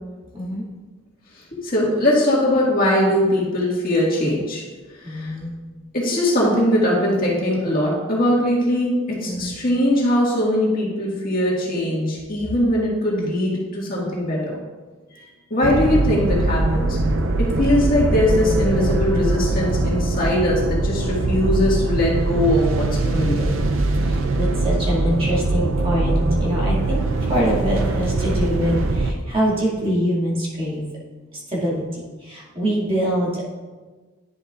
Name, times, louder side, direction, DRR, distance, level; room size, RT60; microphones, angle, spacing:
voice 1, 1.5-4.6 5.0-5.3 5.9-14.6 15.1-15.2 15.5-17.0 17.4-23.5, left 1 dB, 40° left, -4 dB, 1.9 m, -21 dB
voice 2, 5.0-5.5 9.2-9.5 24.1-30.8 31.5-31.8 32.2-33.5, equal, 25° right, -6 dB, 2.2 m, -24 dB
sound 1, 15.6-29.1, right 2 dB, 70° right, 0.5 m, -22 dB
10.5 x 7.0 x 2.5 m, 1.3 s
head